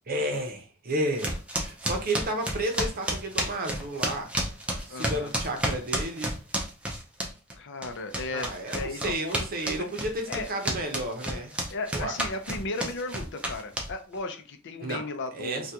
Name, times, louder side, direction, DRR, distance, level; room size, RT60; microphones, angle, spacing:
voice 1, 0.1-4.3 4.9-6.4 8.3-11.6 11.9-12.1 14.8-15.7, right 1 dB, 45° right, 3 dB, 0.8 m, -32 dB
sound 1, 1.2-7.5 7.8-14.2, right 1 dB, 5° right, 0.6 m, -31 dB
voice 2, 4.9-5.3 7.6-9.9 10.3-10.5 11.7-15.7, left 3 dB, 60° left, 7 dB, 0.5 m, -36 dB
3.5 x 2.3 x 2.8 m, 0.34 s
head